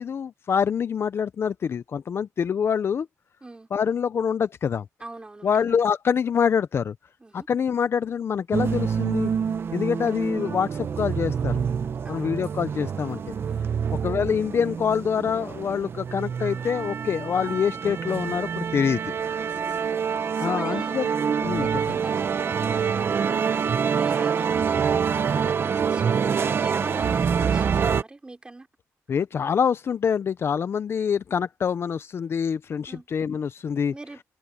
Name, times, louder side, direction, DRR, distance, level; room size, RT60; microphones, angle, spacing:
voice 1, 0.0-3.1 3.7-4.8 5.4-6.9 7.3-9.3 9.7-11.5 12.1-13.3 14.0-19.1 20.4-21.1 21.4-21.7 29.1-33.9, left 7 dB, 45° left, 0.5 m, -25 dB
voice 2, 5.0-5.8 7.2-7.5 12.0-12.5 13.5-13.9 19.4-19.8 20.2-21.0 21.6-28.7 32.9-33.1 33.9-34.2, right 2 dB, 15° right, 4.0 m, -42 dB
sound 1, 8.5-28.0, right 7 dB, 45° right, 0.7 m, -26 dB
cardioid pair, 135°, 6 cm